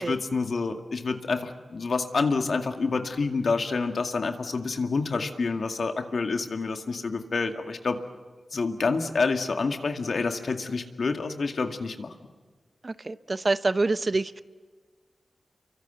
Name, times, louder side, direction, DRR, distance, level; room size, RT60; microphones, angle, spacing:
voice 1, 0.0-8.0 8.5-12.1, left 4 dB, 70° left, 6 dB, 2.1 m, -28 dB
voice 2, 12.8-14.4, right 3 dB, 45° right, 13 dB, 0.9 m, -26 dB
28.5 x 23.5 x 8.1 m, 1.4 s
cardioid pair, 40°, 0 cm